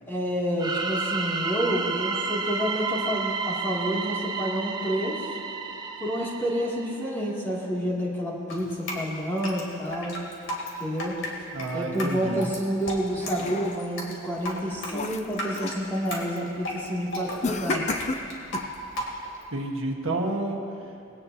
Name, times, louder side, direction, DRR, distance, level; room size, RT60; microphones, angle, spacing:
voice 1, 0.1-5.4 6.0-10.1 10.8-11.2 11.7-18.0 18.3-18.4, equal, 10° left, -5 dB, 2.5 m, -29 dB
sound 1, 0.6-7.2, right 4 dB, 20° right, 0.7 m, -31 dB
Drip, 8.5-19.5, left 1 dB, 60° left, 2.7 m, -35 dB
voice 2, 11.5-12.5 19.5-20.6, right 2 dB, 70° right, 1 dB, 1.5 m, -30 dB
sound 2, 12.9-14.0 14.5-15.8 16.2-16.6 17.4-18.8, left 2 dB, 35° left, 0.6 m, -33 dB
21.0 x 17.5 x 2.8 m, 2.6 s
head